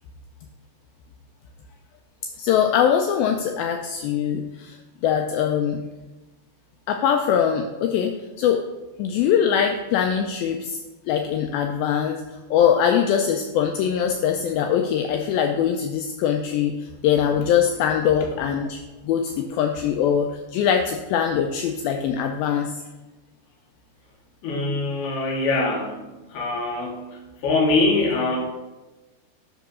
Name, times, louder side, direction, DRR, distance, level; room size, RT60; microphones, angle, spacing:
voice 1, 2.4-5.8 6.9-8.6 9.0-10.8 11.1-12.2 12.5-18.8 19.0-22.7, left 8 dB, 90° left, 4 dB, 2.0 m, -22 dB
voice 2, 24.4-26.0 26.3-28.4, left 2 dB, 70° left, -1 dB, 3.4 m, -23 dB
10.5 x 3.8 x 6.1 m, 1.1 s
omnidirectional pair, 4.8 m